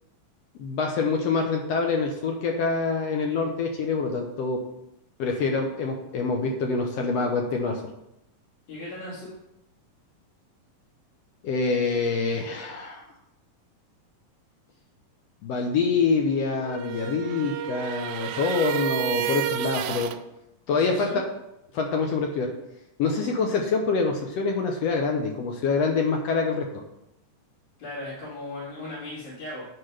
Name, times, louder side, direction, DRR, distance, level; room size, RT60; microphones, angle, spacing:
voice 1, 0.6-4.6 5.2-7.8 11.4-13.0 15.4-20.1 20.7-21.2 21.7-22.5 23.0-26.7, left 4 dB, 75° left, 2 dB, 1.5 m, -25 dB
voice 2, 8.7-9.3 20.7-21.2 27.8-29.7, left 1 dB, 55° left, -11 dB, 3.8 m, -37 dB
sound 1, 16.6-20.2, right 11 dB, 90° right, 2.3 m, -30 dB
10.0 x 4.8 x 4.9 m, 0.84 s
omnidirectional pair, 3.9 m